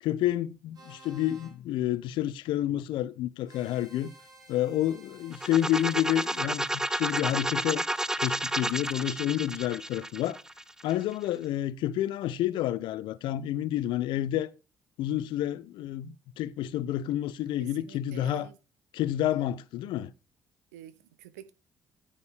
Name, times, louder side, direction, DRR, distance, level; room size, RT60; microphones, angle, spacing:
voice 1, 0.0-4.1 4.5-7.8 8.2-10.4 10.8-14.5 15.0-18.5 18.9-20.1, left 12 dB, 70° left, 0.5 m, -29 dB
sound 1, 0.7-1.5 3.5-6.4, right 1 dB, 50° right, 4.5 m, -53 dB
sound 2, 5.3-11.1, right 1 dB, 5° right, 0.4 m, -31 dB
voice 2, 17.6-18.6 19.3-19.5 20.7-21.5, right 12 dB, 85° right, 0.5 m, -48 dB
9.8 x 5.3 x 4.5 m
hypercardioid pair, 50°, 9 cm